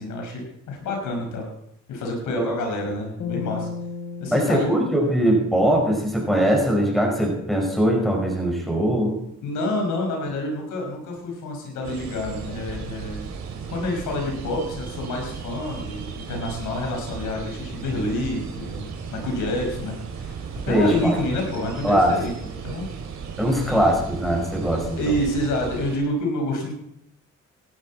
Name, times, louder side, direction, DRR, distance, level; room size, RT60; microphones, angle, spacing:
voice 1, 0.0-1.5 1.9-3.7 4.2-4.7 9.4-13.3 13.7-20.4 20.6-22.9 23.7-23.8 25.0-26.7, left 1 dB, 80° left, 2 dB, 5.2 m, -28 dB
sound 1, 3.2-6.5, left 5 dB, 50° left, 3.4 m, -35 dB
voice 2, 4.3-9.2 20.7-21.2 21.8-22.1 23.4-25.1, equal, ahead, 1 dB, 4.6 m, -21 dB
sound 2, 11.8-26.0, right 6 dB, 65° right, 2.8 m, -35 dB
17.0 x 12.0 x 4.2 m, 0.79 s
cardioid pair, 90°, 30 cm